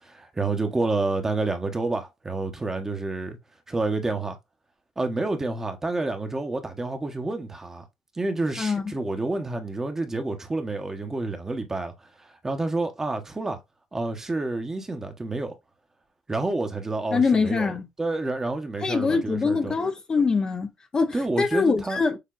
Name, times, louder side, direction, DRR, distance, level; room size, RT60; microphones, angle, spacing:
voice 1, 0.0-3.4 3.7-4.4 5.0-7.8 8.1-13.6 13.9-15.6 16.3-17.7 18.0-19.8 21.1-22.0, right 2 dB, 20° right, 1.1 m, -29 dB
voice 2, 8.6-8.9 17.1-17.9 18.8-22.2, left 4 dB, 30° left, 0.8 m, -24 dB
6.7 x 2.7 x 2.5 m
cardioid pair, 90°, 3 cm